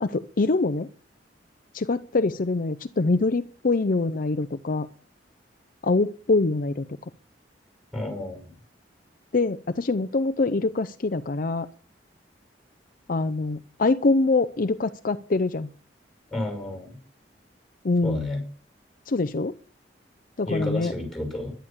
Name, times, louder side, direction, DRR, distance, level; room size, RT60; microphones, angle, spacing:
voice 1, 0.0-0.9 1.7-4.9 5.8-6.9 9.3-11.7 13.1-15.7 17.8-18.3 19.1-19.5 20.4-20.9, left 3 dB, 55° left, 12 dB, 0.6 m, -24 dB
voice 2, 7.9-8.5 16.3-17.0 18.0-18.4 20.5-21.5, left 1 dB, ahead, 3 dB, 6.3 m, -31 dB
11.5 x 11.0 x 7.3 m, 0.42 s
head